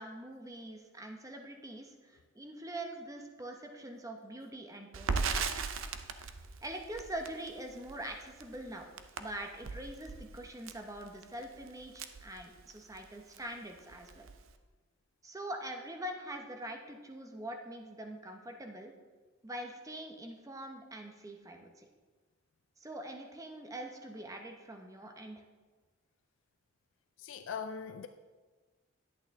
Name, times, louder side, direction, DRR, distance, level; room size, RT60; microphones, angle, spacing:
voice 1, 0.0-5.5 6.6-8.9 9.2-14.3 15.2-18.9 19.4-21.8 22.8-25.4, right 1 dB, 15° right, 3 dB, 0.9 m, -44 dB
Crackle, 4.9-13.0 13.3-13.5 13.8-14.5, right 5 dB, 75° right, 0.6 m, -39 dB
voice 2, 27.2-28.1, left 6 dB, 65° left, 8 dB, 0.4 m, -40 dB
10.5 x 8.6 x 3.6 m, 1.4 s
head